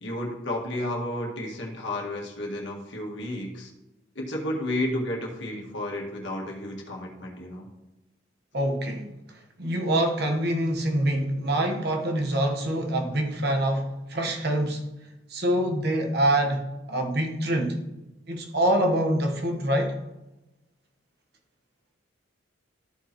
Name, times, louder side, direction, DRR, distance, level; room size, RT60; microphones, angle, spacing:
voice 1, 0.0-3.7 4.2-7.7, left 1 dB, 65° left, -1 dB, 1.8 m, -32 dB
voice 2, 8.5-9.1 9.6-14.9 15.3-17.8 18.3-19.9, right 1 dB, 55° right, 3 dB, 1.2 m, -25 dB
13.5 x 4.7 x 3.0 m, 0.98 s
head